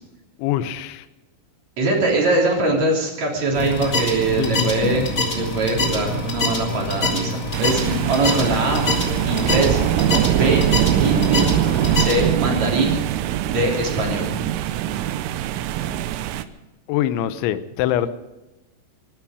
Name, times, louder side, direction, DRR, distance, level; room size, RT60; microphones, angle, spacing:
voice 1, 0.4-1.1 4.4-4.9 16.9-18.1, left 11 dB, 75° left, 12 dB, 3.0 m, -24 dB
voice 2, 1.8-8.8 9.3-9.8 10.3-10.6 11.0-11.5 11.9-13.0 13.4-14.2, right 2 dB, 40° right, -1 dB, 3.9 m, -22 dB
sound 1, 3.5-12.1, left 1 dB, 30° left, 1.6 m, -25 dB
sound 2, 7.5-16.4, right 12 dB, 80° right, 3.2 m, -22 dB
23.5 x 12.0 x 5.0 m, 1.0 s
omnidirectional pair, 5.8 m